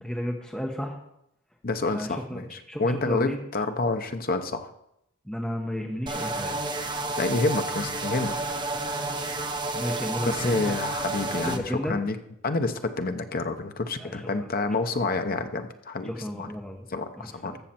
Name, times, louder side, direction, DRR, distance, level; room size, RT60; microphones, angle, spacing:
voice 1, 0.0-1.0 1.9-3.4 5.3-6.5 9.7-10.7 11.5-11.9 14.0-14.3 14.9-15.0 16.1-16.9 17.2-17.6, equal, 5° left, 1 dB, 0.9 m, -33 dB
voice 2, 1.6-4.7 7.2-8.4 10.2-12.2 12.4-16.5 16.9-17.6, left 3 dB, 45° left, 8 dB, 0.8 m, -28 dB
sound 1, 6.1-11.6, right 2 dB, 20° right, 0.8 m, -30 dB
15.0 x 6.5 x 4.4 m, 0.81 s
head